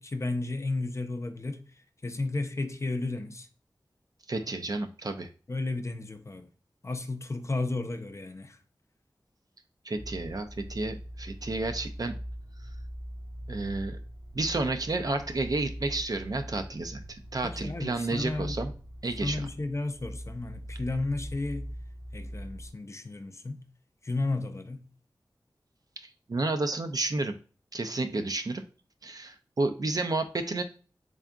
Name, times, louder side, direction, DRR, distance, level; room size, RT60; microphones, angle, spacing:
voice 1, 0.0-1.6 2.0-3.5 5.5-6.5 6.8-8.6 17.4-18.5 19.2-21.7 22.1-23.6 24.0-24.9, left 2 dB, 40° left, 0.5 m, -33 dB
voice 2, 4.3-5.3 9.8-12.2 13.5-14.0 14.3-18.7 19.0-19.5 26.3-27.3 27.7-28.7 29.0-30.6, right 2 dB, 55° right, 0.5 m, -31 dB
sound 1, 10.0-22.7, equal, 75° right, 1.3 m, -41 dB
3.8 x 3.4 x 2.3 m
wide cardioid pair, 60°, 8 cm